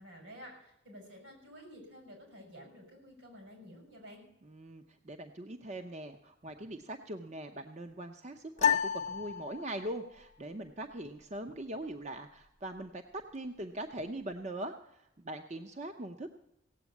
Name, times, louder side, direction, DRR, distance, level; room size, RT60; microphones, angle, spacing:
voice 1, 0.0-4.2, equal, 70° right, 2 dB, 6.0 m, -51 dB
voice 2, 4.4-16.3, right 1 dB, 35° right, 6 dB, 0.7 m, -41 dB
sound 1, 8.6-10.1, left 7 dB, 35° left, 0.7 m, -31 dB
17.5 x 8.0 x 8.3 m, 0.85 s
head